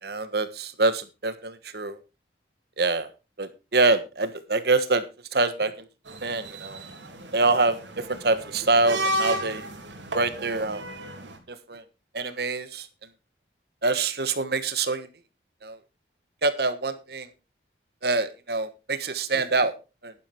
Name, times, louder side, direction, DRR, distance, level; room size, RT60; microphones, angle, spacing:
voice 1, 0.0-2.0 2.8-3.1 3.4-5.0 5.3-5.7 6.2-6.8 7.3-9.7 10.1-10.8 11.5-11.8 12.1-12.9 13.8-15.1 15.6-15.8 16.4-17.3 18.0-19.7 20.0-20.1, right 3 dB, 60° right, 12 dB, 1.3 m, -25 dB
sound 1, 6.1-11.4, right 1 dB, 90° right, 3.0 m, -33 dB
11.0 x 10.5 x 4.5 m, 0.29 s
head